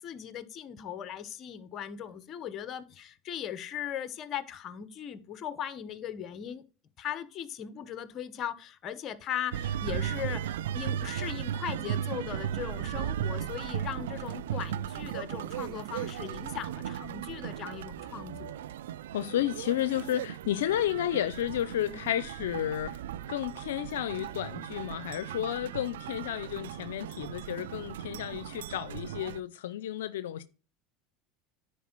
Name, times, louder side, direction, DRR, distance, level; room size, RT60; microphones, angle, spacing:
voice 1, 0.0-6.6 7.0-18.6 21.7-22.0, left 9 dB, 45° left, 1.1 m, -39 dB
sound 1, 9.5-29.4, right 10 dB, 90° right, 0.3 m, -36 dB
voice 2, 19.1-23.0 23.3-30.4, left 12 dB, 90° left, 0.5 m, -32 dB
10.0 x 4.4 x 4.5 m
supercardioid pair, 105°, 0 cm